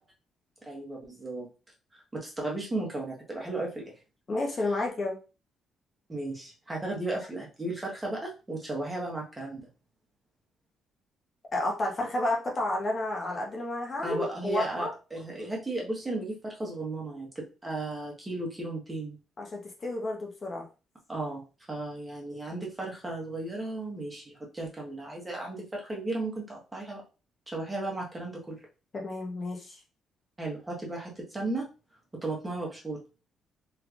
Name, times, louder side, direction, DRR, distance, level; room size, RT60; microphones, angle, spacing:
voice 1, 0.7-1.5 2.1-3.9 6.1-9.7 14.0-19.2 21.1-27.0 27.5-28.6 30.4-31.7 32.1-33.0, right 2 dB, 20° right, -2 dB, 1.2 m, -35 dB
voice 2, 4.3-5.2 11.5-14.9 19.4-20.7 28.9-29.8, left 2 dB, 40° left, 0 dB, 0.9 m, -31 dB
3.3 x 3.2 x 2.5 m, 0.32 s
cardioid pair, 90°, 0 cm